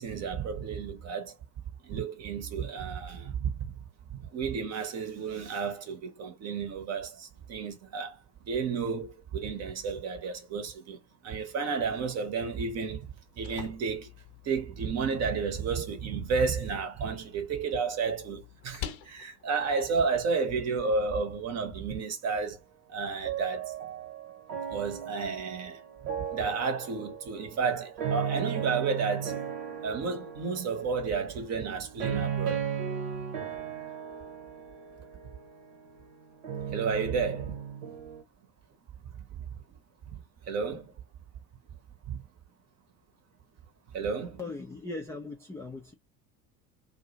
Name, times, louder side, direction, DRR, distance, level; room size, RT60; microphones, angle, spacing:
voice 1, 0.0-1.3 1.8-3.5 4.1-8.2 8.5-11.0 11.2-13.1 13.4-14.1 14.4-22.6 22.9-23.7 24.7-25.8 26.3-29.4 29.8-32.6 36.7-37.6 40.1-40.2 40.5-40.9 42.1-42.2 43.9-44.4, right 5 dB, 35° right, 0.9 m, -32 dB
sound 1, 13.0-21.0, left 13 dB, 50° left, 0.6 m, -48 dB
sound 2, 23.2-38.2, right 8 dB, 65° right, 1.0 m, -36 dB
voice 2, 44.4-45.9, left 3 dB, 5° left, 0.4 m, -39 dB
2.4 x 2.0 x 2.7 m
figure-of-eight pair, 70°, 45 cm